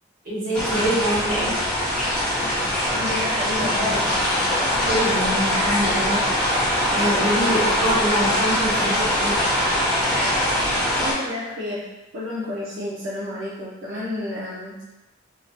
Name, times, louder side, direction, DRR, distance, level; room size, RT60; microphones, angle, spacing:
voice 1, 0.2-1.6 4.8-6.6 6.9-9.3, right 1 dB, 50° right, -10 dB, 1.4 m, -25 dB
sound 1, 0.5-11.1, left 1 dB, 5° left, 0.8 m, -22 dB
voice 2, 2.9-4.2 11.0-11.9 12.1-14.8, left 2 dB, 80° right, -8 dB, 0.6 m, -30 dB
2.8 x 2.1 x 2.7 m, 1.0 s
head